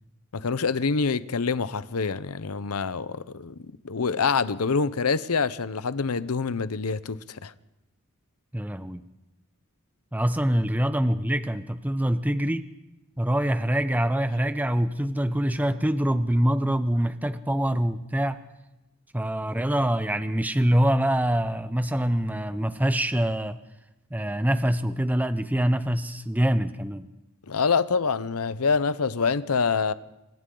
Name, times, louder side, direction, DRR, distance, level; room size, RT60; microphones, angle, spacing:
voice 1, 0.3-3.5 3.8-7.5 27.5-29.9, left 5 dB, 80° left, 0.8 m, -26 dB
voice 2, 8.5-9.0 10.1-12.7 13.2-18.4 19.1-23.6 24.1-27.1, right 1 dB, 5° right, 0.6 m, -25 dB
27.5 x 25.5 x 3.9 m
head